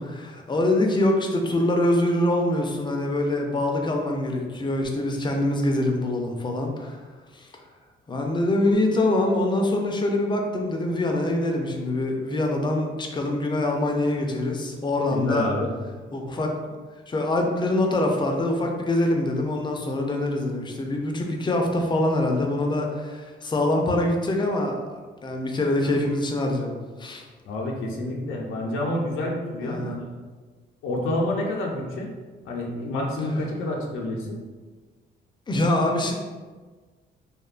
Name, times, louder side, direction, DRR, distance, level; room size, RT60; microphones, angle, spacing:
voice 1, 0.0-7.0 7.3-7.5 8.1-15.5 16.1-16.5 17.1-24.8 25.2-27.2 29.6-29.9 35.5-36.1, left 1 dB, 25° left, 2 dB, 0.4 m, -24 dB
voice 2, 15.1-15.7 27.5-30.0 30.8-32.1 32.4-34.4, left 1 dB, 90° left, 0 dB, 0.5 m, -28 dB
2.6 x 2.1 x 2.4 m, 1.4 s
cardioid pair, 90°, 20 cm